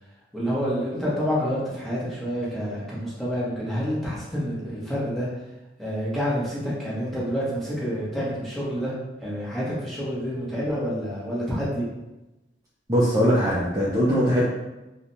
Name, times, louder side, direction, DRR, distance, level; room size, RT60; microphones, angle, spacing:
voice 1, 0.3-5.3 5.8-8.9 9.2-11.8, equal, ahead, -8 dB, 0.8 m, -28 dB
voice 2, 12.9-14.4, equal, 20° right, -8 dB, 0.4 m, -21 dB
3.1 x 2.1 x 2.6 m, 1.0 s
head